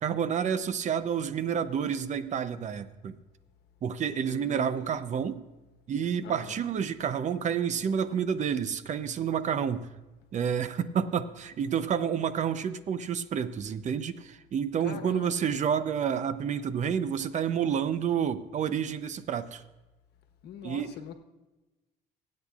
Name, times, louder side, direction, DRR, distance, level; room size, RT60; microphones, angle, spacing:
voice 1, 0.0-3.2 3.8-5.4 5.9-9.9 10.3-19.6 20.6-20.9, right 8 dB, 45° right, 13 dB, 0.7 m, -29 dB
voice 2, 4.1-5.0 6.2-6.6 14.8-15.6 20.4-21.1, left 8 dB, 75° left, 6 dB, 1.1 m, -44 dB
24.0 x 8.5 x 2.4 m, 1.1 s
cardioid pair, 110°, 17 cm